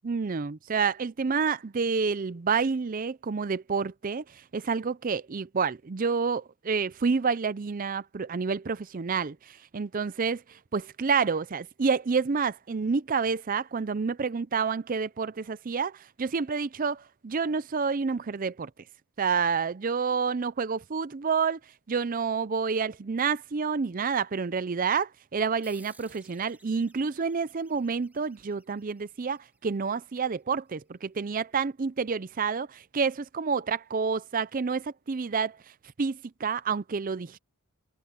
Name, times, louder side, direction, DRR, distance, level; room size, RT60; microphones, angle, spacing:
voice 1, 0.0-18.7 19.2-21.6 21.9-35.6 36.0-37.4, right 5 dB, 40° right, 0.5 m, -29 dB
sound 1, 25.6-30.6, right 2 dB, 10° right, 3.4 m, -59 dB
head